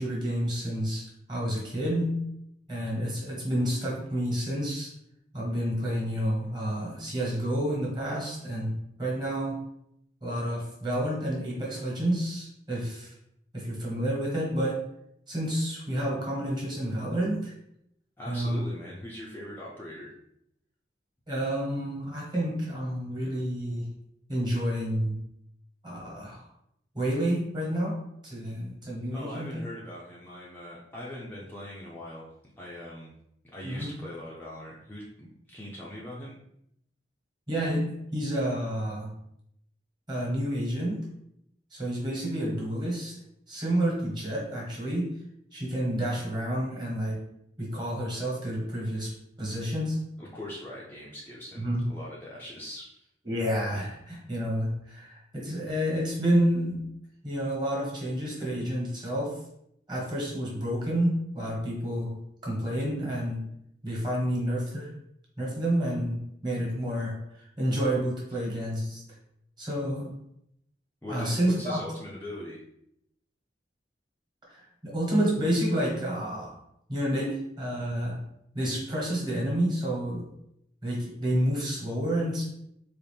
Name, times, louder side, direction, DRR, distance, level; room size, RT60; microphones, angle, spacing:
voice 1, 0.0-2.2 2.7-4.9 5.3-9.7 10.2-13.1 13.5-14.8 15.3-17.5 18.3-18.6 21.3-23.9 24.3-25.2 25.8-26.4 26.9-29.6 33.6-33.9 37.5-39.1 40.1-41.1 41.7-43.1 43.5-45.1 45.5-47.2 47.6-50.0 51.5-51.9 53.2-56.9 57.2-59.4 59.9-63.5 63.8-64.9 65.4-69.0 69.6-70.1 71.1-71.8 74.5-76.6 76.9-78.2 78.5-80.3 80.8-82.4, equal, 25° right, -4 dB, 1.3 m, -29 dB
voice 2, 18.2-20.1 29.1-32.3 32.6-33.1 33.5-36.4 50.2-53.1 71.0-72.6, left 1 dB, 10° left, -6 dB, 0.5 m, -41 dB
4.1 x 2.5 x 3.3 m, 0.77 s
head